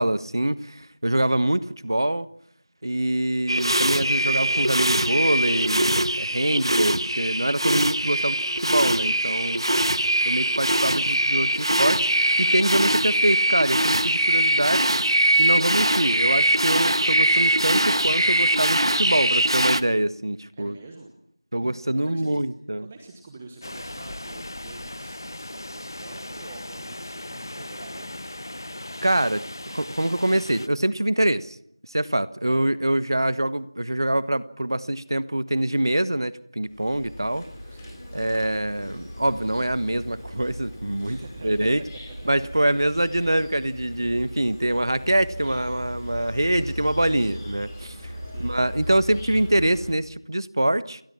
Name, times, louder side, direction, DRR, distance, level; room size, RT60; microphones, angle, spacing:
voice 1, 0.0-2.3 2.8-9.6 10.3-12.1 12.4-14.9 15.4-20.8 21.5-22.9 29.0-31.6 31.9-37.5 38.1-41.2 41.4-41.8 42.2-48.1 48.4-51.0, right 1 dB, 55° right, 14 dB, 1.3 m, -24 dB
sound 1, 3.5-19.8, right 1 dB, 80° right, 1.5 m, -22 dB
voice 2, 9.6-10.0 20.5-21.1 21.8-22.4 22.8-28.4 32.4-32.6 37.7-38.5 41.0-41.7 42.2-42.5 43.0-43.3 48.2-48.6, right 3 dB, 10° right, 4 dB, 1.2 m, -46 dB
sound 2, 23.6-30.7, left 1 dB, 50° left, 1.1 m, -38 dB
Insect, 36.6-49.9, equal, 5° left, 5.0 m, -38 dB
29.0 x 22.5 x 6.0 m, 0.72 s
figure-of-eight pair, 175°, 3 cm